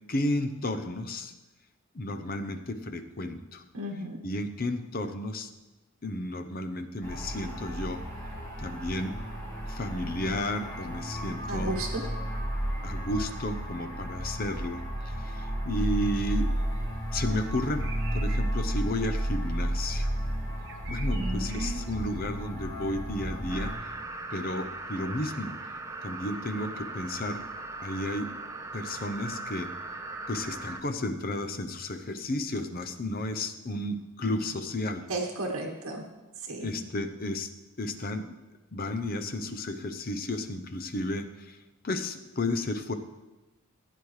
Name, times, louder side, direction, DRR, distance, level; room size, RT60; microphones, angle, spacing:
voice 1, 0.1-1.3 1.9-3.6 4.2-5.5 6.0-8.0 8.6-9.1 9.6-11.7 12.8-16.5 17.1-20.1 20.9-23.7 24.3-25.5 26.0-27.4 27.8-28.3 28.7-29.7 30.3-35.0 36.6-37.5 37.8-38.3 38.7-41.6 41.8-42.9, left 1 dB, 40° left, 8 dB, 0.7 m, -32 dB
voice 2, 3.7-4.2 11.5-12.0 21.1-21.8 35.1-36.0 36.4-36.8, right 2 dB, 80° right, -2 dB, 1.3 m, -34 dB
sound 1, 7.0-23.7, equal, 15° left, 3.1 m, -32 dB
sound 2, 15.8-22.3, right 4 dB, 55° right, 1.2 m, -50 dB
sound 3, 23.5-30.8, right 3 dB, 15° right, 0.6 m, -39 dB
16.0 x 8.9 x 3.2 m, 1.1 s
head